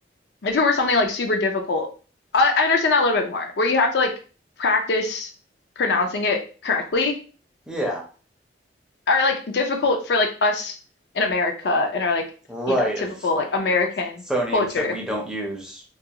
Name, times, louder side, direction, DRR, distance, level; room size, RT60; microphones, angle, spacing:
voice 1, 0.4-1.9 2.3-4.1 4.6-5.3 5.8-7.2 9.1-10.8 11.1-12.2 12.7-12.9 13.2-14.2 14.5-14.9, left 3 dB, 60° left, 2 dB, 0.4 m, -22 dB
voice 2, 7.7-8.0 12.5-13.3 14.3-15.8, right 1 dB, 5° right, -2 dB, 0.5 m, -27 dB
2.3 x 2.3 x 2.8 m, 0.37 s
head